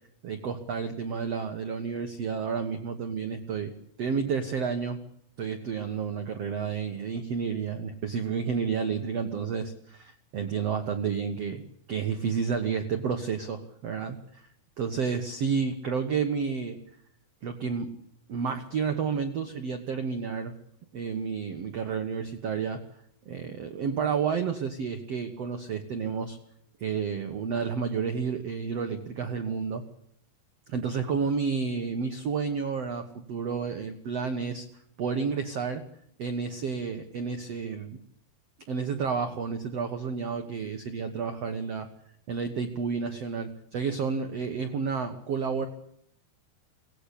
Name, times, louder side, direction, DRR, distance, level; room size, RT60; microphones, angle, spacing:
voice 1, 0.2-3.7 4.0-5.0 5.4-11.6 11.9-14.5 14.8-16.8 17.4-17.9 18.3-20.5 20.9-22.8 23.2-26.4 26.8-29.8 30.7-34.6 35.0-35.8 36.2-38.0 38.7-41.9 42.3-45.7, right 6 dB, 70° right, 7 dB, 1.4 m, -30 dB
24.0 x 18.5 x 8.5 m, 0.73 s
omnidirectional pair, 4.9 m